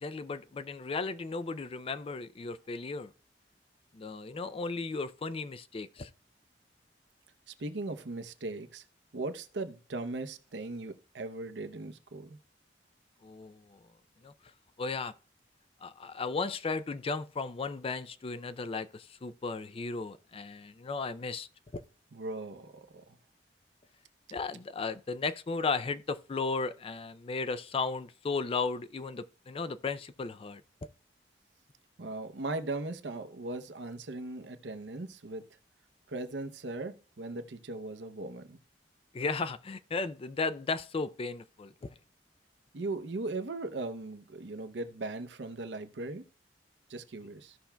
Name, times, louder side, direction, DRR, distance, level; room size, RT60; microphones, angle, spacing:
voice 1, 0.0-3.1 3.9-6.1 13.2-13.8 14.2-14.3 14.8-15.1 15.8-21.8 24.3-30.6 39.1-41.9, left 4 dB, 30° left, 0.4 m, -35 dB
voice 2, 7.5-8.8 9.1-12.4 22.1-23.0 32.0-35.4 36.1-38.6 42.7-46.2 46.9-47.6, right 2 dB, 80° right, 0.7 m, -38 dB
15.5 x 5.7 x 2.2 m
head